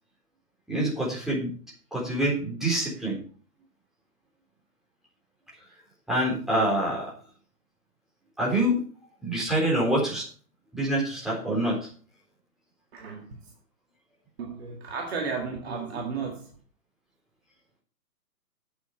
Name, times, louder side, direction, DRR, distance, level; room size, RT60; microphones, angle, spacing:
voice 1, 0.7-1.5 1.9-3.2 6.1-7.1 8.4-8.8 9.2-10.2 10.7-11.8, right 1 dB, ahead, 3.9 m, -26 dB
voice 2, 12.9-13.5 14.4-16.5, right 5 dB, 40° right, 2.0 m, -34 dB
8.3 x 8.2 x 5.5 m
figure-of-eight pair, 135°, 49 cm